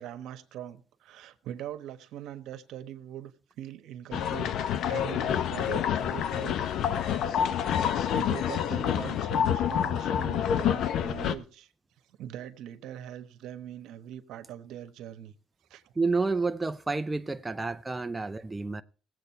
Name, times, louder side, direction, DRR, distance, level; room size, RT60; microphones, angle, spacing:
voice 1, 0.0-4.5 4.9-7.2 8.1-11.7 12.1-15.3 15.7-15.9, right 11 dB, 75° right, 1.2 m, -42 dB
sound 1, 4.1-11.4, left 9 dB, 65° left, 0.9 m, -28 dB
voice 2, 16.0-18.8, right 3 dB, 15° right, 0.5 m, -29 dB
18.5 x 7.9 x 4.4 m
cardioid pair, 105°, 0 cm